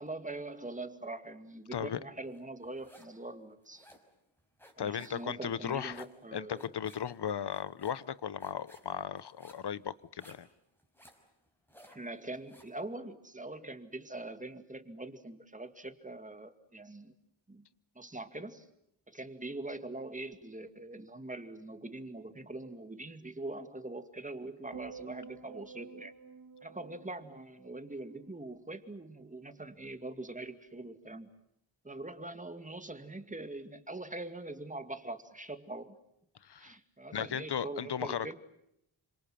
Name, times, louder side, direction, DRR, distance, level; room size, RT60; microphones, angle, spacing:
voice 1, 0.0-3.9 4.8-6.7 11.8-17.1 17.5-17.7 18.0-18.7 19.1-26.1 26.6-31.3 31.8-36.0 36.6-38.4, right 2 dB, 15° right, 2.3 m, -43 dB
sound 1, 2.3-3.2 3.5-12.8, equal, 5° left, 5.4 m, -59 dB
voice 2, 4.8-6.1 6.3-10.5 36.4-36.7 37.1-38.3, left 8 dB, 60° left, 1.1 m, -36 dB
sound 2, 24.7-29.1 29.4-29.8, right 5 dB, 45° right, 3.2 m, -51 dB
28.5 x 26.0 x 7.6 m
wide cardioid pair, 90°, 47 cm